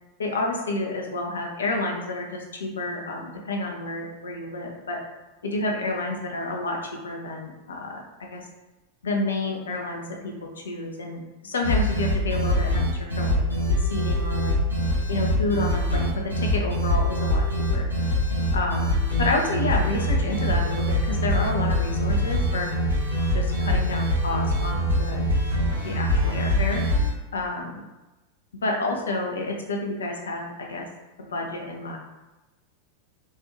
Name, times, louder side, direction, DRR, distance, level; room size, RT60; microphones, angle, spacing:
voice 1, 0.2-5.0 5.4-8.4 9.0-14.5 15.1-17.9 18.5-22.7 23.3-25.2 25.8-26.8 27.3-27.8 28.6-30.9 31.2-32.0, left 2 dB, 70° left, 0 dB, 0.8 m, -30 dB
sound 1, 11.6-27.1, equal, 90° right, 1.2 m, -24 dB
4.2 x 2.6 x 3.6 m, 1.1 s
figure-of-eight pair, 90°, 0 cm